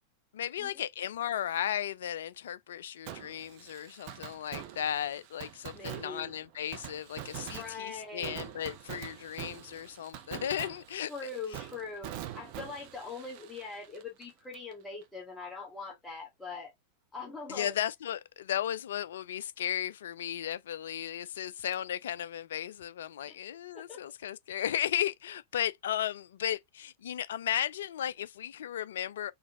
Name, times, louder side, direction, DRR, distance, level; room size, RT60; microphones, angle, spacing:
voice 1, 0.3-11.1 17.5-29.3, left 10 dB, 60° left, 0.3 m, -35 dB
Fireworks, 3.1-14.7 15.0-15.1 21.7-21.8, right 11 dB, 45° right, 0.6 m, -45 dB
voice 2, 5.7-6.3 7.5-8.4 11.1-16.7 17.1-17.8 23.3-23.4 23.7-24.0, left 4 dB, 10° left, 1.0 m, -42 dB
3.9 x 3.1 x 2.8 m
figure-of-eight pair, 90°, 0 cm